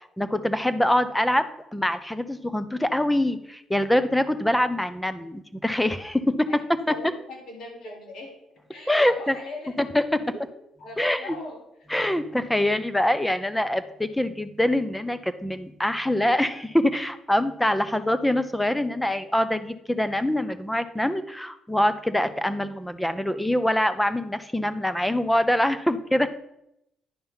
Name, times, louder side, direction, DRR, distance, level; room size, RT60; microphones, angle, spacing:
voice 1, 0.2-1.5 1.7-6.6 8.9-9.3 9.8-10.2 11.0-11.4 11.9-26.3, left 1 dB, 5° left, 12 dB, 0.8 m, -24 dB
voice 2, 6.9-8.3 8.7-10.4 10.8-11.6, left 2 dB, 75° left, -1 dB, 3.9 m, -40 dB
10.0 x 5.5 x 5.6 m, 0.81 s
cardioid pair, 90°, 0 cm